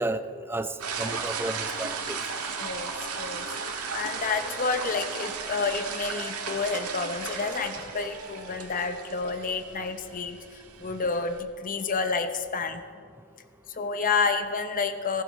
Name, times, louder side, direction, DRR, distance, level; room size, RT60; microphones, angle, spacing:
voice 1, 0.0-2.2, right 2 dB, 10° right, 11 dB, 0.4 m, -32 dB
sound 1, 0.8-11.4, right 5 dB, 90° right, 1.7 m, -35 dB
Wind instrument woodwind instrument, 2.0-5.7 6.0-10.1, equal, 50° right, 3.9 m, -48 dB
voice 2, 2.5-3.5 3.9-12.8 13.7-15.2, left 4 dB, 35° left, 9 dB, 0.8 m, -30 dB
15.5 x 14.0 x 4.1 m, 2.1 s
head